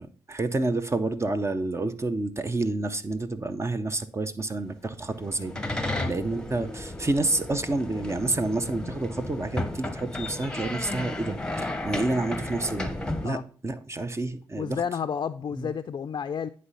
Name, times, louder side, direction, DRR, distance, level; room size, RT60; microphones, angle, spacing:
voice 1, 0.0-12.9 13.2-14.8 15.6-15.7, right 2 dB, 30° right, 0.8 m, -29 dB
sound 1, 5.0-13.3, left 1 dB, 10° left, 1.0 m, -34 dB
voice 2, 14.6-16.5, left 7 dB, 50° left, 0.4 m, -31 dB
9.5 x 3.3 x 5.4 m
supercardioid pair, 50°, 10 cm